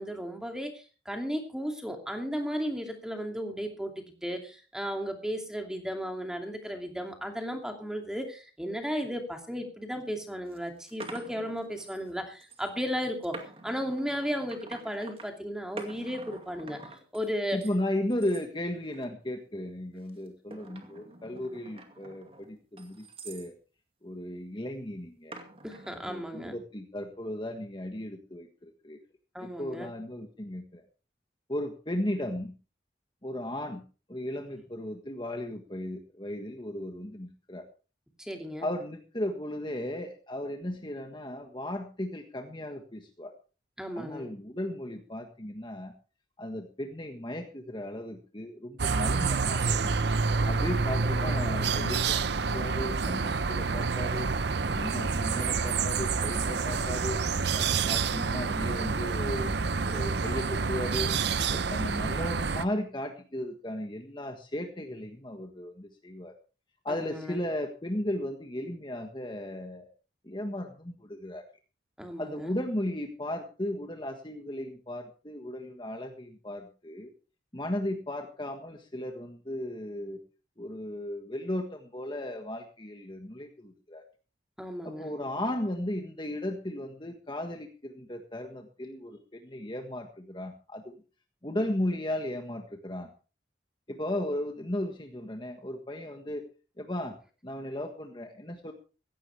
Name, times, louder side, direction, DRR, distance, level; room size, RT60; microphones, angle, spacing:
voice 1, 0.0-13.4 13.6-16.8 17.1-17.6 25.6-26.5 29.3-29.9 38.2-38.7 43.8-44.3 66.9-67.4 72.0-72.5 84.6-85.1, equal, 5° right, 3 dB, 2.6 m, -35 dB
sound 1, 9.9-10.0 10.5-12.1 12.4-12.7 13.2-15.3 15.8-17.8 18.1-18.5 18.9-19.3 20.1-23.5 25.3-26.2, right 2 dB, 30° right, 2.3 m, -47 dB
voice 2, 17.5-23.5 24.0-25.4 26.1-29.0 29.4-30.8 31.5-32.5 33.2-33.8 34.1-37.7 38.6-43.3 43.9-45.9 46.4-49.9 50.4-54.3 54.7-57.2 57.5-59.6 59.8-61.1 61.5-66.4 66.8-69.8 70.2-71.4 72.2-77.1 77.5-80.2 80.6-84.0 84.8-91.0 91.4-93.1 93.9-96.4 96.8-97.2 97.4-98.7, left 1 dB, 25° left, 4 dB, 1.5 m, -35 dB
sound 2, 48.8-62.7, right 4 dB, 65° right, 0.7 m, -28 dB
16.5 x 15.5 x 3.4 m, 0.35 s
head